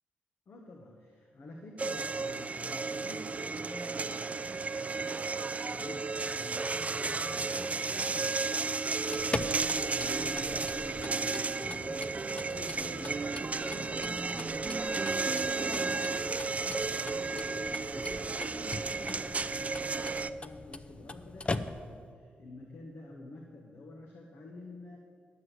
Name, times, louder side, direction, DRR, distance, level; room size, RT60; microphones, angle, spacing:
voice 1, 0.5-25.0, left 2 dB, 65° left, 0 dB, 1.4 m, -49 dB
sound 1, 1.8-20.3, right 4 dB, 35° right, 0.4 m, -33 dB
sound 2, 8.9-22.1, left 2 dB, 30° left, 0.6 m, -42 dB
11.5 x 6.2 x 8.1 m, 2.2 s
supercardioid pair, 50°, 4 cm